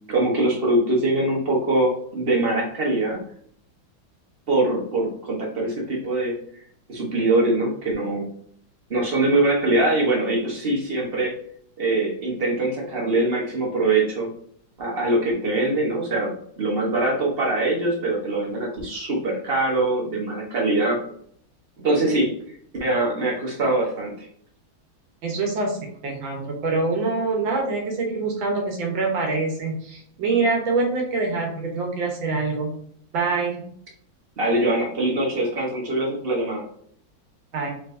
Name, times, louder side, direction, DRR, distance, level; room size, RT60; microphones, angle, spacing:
voice 1, 0.1-3.2 4.5-6.4 6.9-8.3 8.9-11.4 11.8-14.3 14.8-21.0 21.8-22.3 22.8-24.3 34.4-36.6, right 2 dB, 35° right, -2 dB, 1.1 m, -23 dB
voice 2, 25.2-32.7 33.1-33.6 37.5-37.8, right 3 dB, 75° right, 2 dB, 1.8 m, -25 dB
4.6 x 3.8 x 2.6 m, 0.63 s
omnidirectional pair, 2.2 m